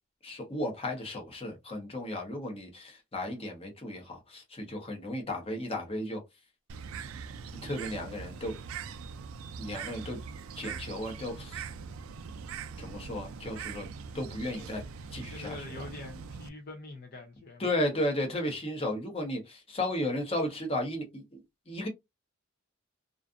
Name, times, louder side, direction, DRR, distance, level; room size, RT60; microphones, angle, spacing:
voice 1, 0.2-6.2 7.6-8.6 9.6-10.2 10.6-11.6 12.8-13.9 14.1-14.8 15.1-15.7 17.6-21.4 21.7-21.9, left 1 dB, 30° left, 0.8 m, -34 dB
Bird, 6.7-16.5, right 6 dB, 85° right, 0.3 m, -42 dB
voice 2, 15.3-17.7, left 2 dB, 45° left, 0.5 m, -44 dB
2.5 x 2.4 x 2.3 m
head